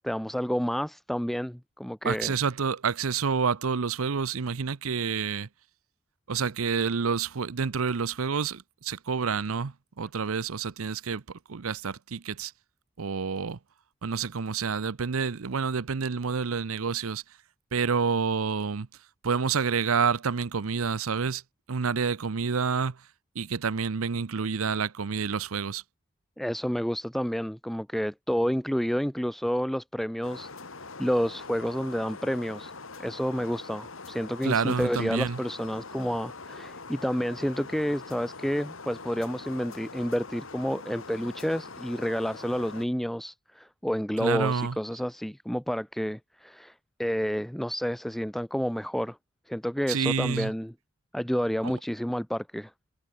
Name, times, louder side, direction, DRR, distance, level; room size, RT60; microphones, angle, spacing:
voice 1, 0.0-2.3 26.4-30.5 31.0-32.7 33.0-49.2 49.5-50.7 51.1-52.7, equal, ahead, 0.3 m, -30 dB
voice 2, 2.0-5.5 6.3-11.2 11.5-12.5 13.0-13.6 14.0-17.2 17.7-18.9 19.2-21.4 21.7-23.0 23.3-25.8 34.4-35.4 44.2-44.8 49.9-50.5 51.6-51.7, right 5 dB, 85° right, 0.7 m, -28 dB
sound 1, 30.2-42.8, left 3 dB, 75° left, 2.7 m, -43 dB
head